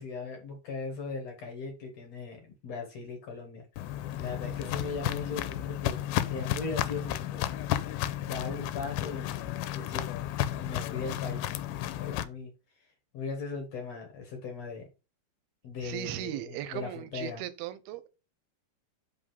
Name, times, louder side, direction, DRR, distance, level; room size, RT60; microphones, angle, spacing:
voice 1, 0.0-6.0 6.2-7.4 8.2-9.4 9.7-10.1 10.4-14.9 15.6-17.4, left 4 dB, 60° left, 1.9 m, -39 dB
Walk footsteps, 3.8-12.2, left 13 dB, 80° left, 2.3 m, -33 dB
voice 2, 15.8-18.1, right 13 dB, 85° right, 2.6 m, -37 dB
5.4 x 5.0 x 5.6 m
omnidirectional pair, 4.4 m